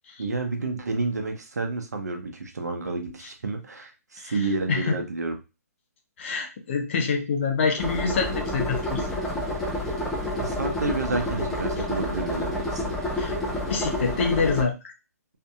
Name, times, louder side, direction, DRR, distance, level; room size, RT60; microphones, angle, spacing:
voice 1, 0.2-5.4 10.3-13.0, right 3 dB, 80° right, 5 dB, 0.7 m, -30 dB
voice 2, 6.2-9.1 13.2-14.8, left 5 dB, 50° left, 3 dB, 0.8 m, -26 dB
sound 1, 7.8-14.6, left 1 dB, 5° left, 0.6 m, -29 dB
2.7 x 2.6 x 2.3 m, 0.26 s
hypercardioid pair, 140°, 9 cm